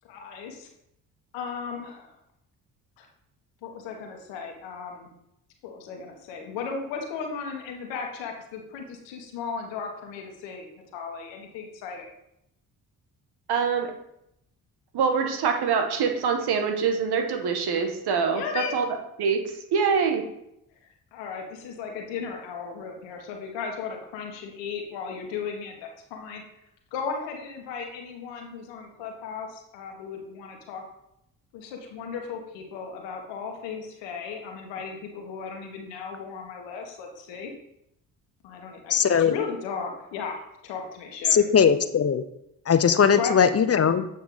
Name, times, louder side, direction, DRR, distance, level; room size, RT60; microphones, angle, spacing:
voice 1, 0.0-0.7 1.3-2.2 3.0-3.1 3.6-5.1 5.6-10.7 10.9-12.1 18.3-18.7 20.8-26.4 26.9-30.8 31.5-37.5 38.4-41.4 43.1-43.4, left 5 dB, 80° left, 2 dB, 1.5 m, -36 dB
voice 2, 13.5-13.9 14.9-18.9 19.2-20.2, right 6 dB, 65° right, 4 dB, 1.4 m, -25 dB
voice 3, 38.9-39.4 41.3-42.2 42.7-44.0, left 7 dB, 35° left, 11 dB, 0.8 m, -19 dB
8.5 x 5.5 x 4.0 m, 0.80 s
hypercardioid pair, 50°, 43 cm